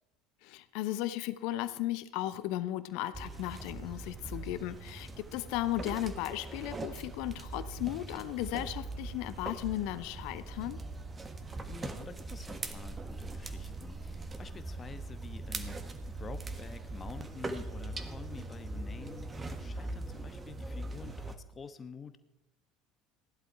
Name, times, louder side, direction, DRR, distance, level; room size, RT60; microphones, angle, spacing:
voice 1, 0.4-10.8, left 14 dB, 60° left, 14 dB, 0.8 m, -35 dB
sound 1, 3.1-21.4, right 2 dB, 20° right, 1.4 m, -41 dB
voice 2, 11.7-22.2, left 5 dB, 25° left, 11 dB, 1.1 m, -48 dB
16.0 x 11.5 x 4.6 m, 0.94 s
figure-of-eight pair, 65°, 0 cm